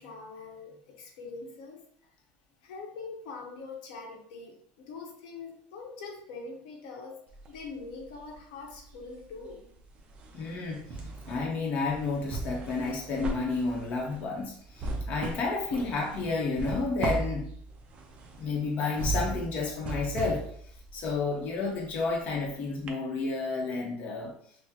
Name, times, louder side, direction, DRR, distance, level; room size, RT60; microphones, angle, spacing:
voice 1, 0.0-1.8 2.6-7.2 7.5-9.7, left 4 dB, 90° left, 1 dB, 1.1 m, -43 dB
sound 1, 7.3-8.4 8.7-22.5 22.9-23.0, right 2 dB, 25° right, 0.5 m, -37 dB
voice 2, 10.3-10.8 11.3-17.5 18.4-20.4 20.9-24.3, left 3 dB, 35° left, -1 dB, 0.7 m, -31 dB
5.7 x 2.0 x 2.8 m, 0.63 s
cardioid pair, 170°, 4 cm